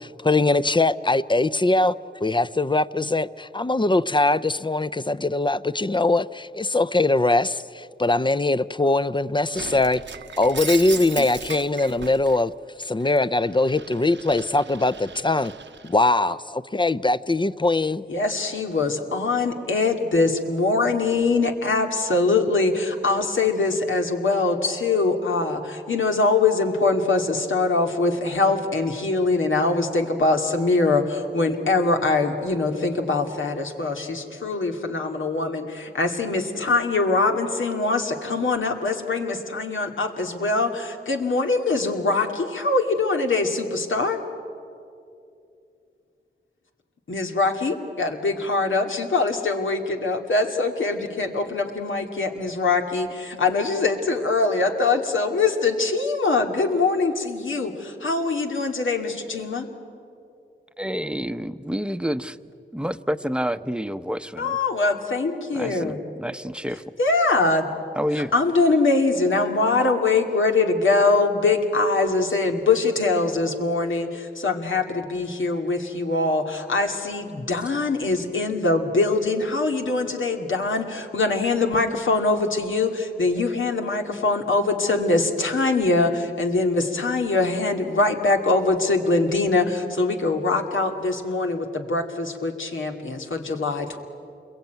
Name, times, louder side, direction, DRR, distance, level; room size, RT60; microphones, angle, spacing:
voice 1, 0.0-1.9 2.2-10.0 10.4-12.5 12.8-15.5 15.8-18.0, left 2 dB, 25° left, 15 dB, 0.6 m, -22 dB
Shatter, 9.5-12.4 12.8-16.0, right 5 dB, 70° right, 1.0 m, -37 dB
voice 2, 18.1-44.2 47.1-59.7 64.4-66.0 67.0-67.7 68.3-94.0, left 3 dB, 85° left, 3 dB, 2.4 m, -23 dB
voice 3, 60.8-62.4 62.7-64.6 65.5-66.8 68.0-68.3, equal, 5° right, 11 dB, 0.8 m, -28 dB
28.0 x 22.0 x 9.2 m, 2.6 s
wide cardioid pair, 65°, 20 cm